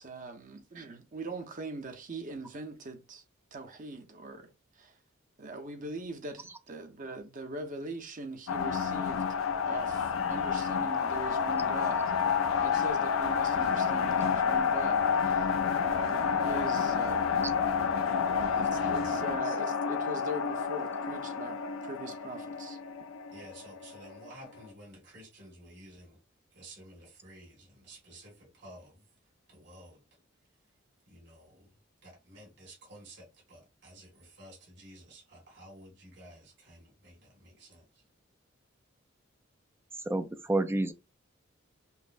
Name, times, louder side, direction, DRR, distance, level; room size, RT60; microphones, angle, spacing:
voice 1, 0.0-3.2 3.5-5.0 5.4-9.2 9.6-12.4 12.6-15.5 15.8-17.4 18.6-21.6 21.8-22.8, right 2 dB, 40° right, 0.7 m, -41 dB
sound 1, 8.5-24.3, left 6 dB, 85° left, 0.4 m, -29 dB
voice 2, 18.5-19.2 19.4-19.6 23.3-26.2 26.5-29.1 29.5-30.0 31.1-38.0, right 1 dB, 60° right, 1.9 m, -52 dB
voice 3, 40.1-40.9, right 2 dB, 10° right, 0.3 m, -29 dB
5.5 x 2.0 x 2.5 m
head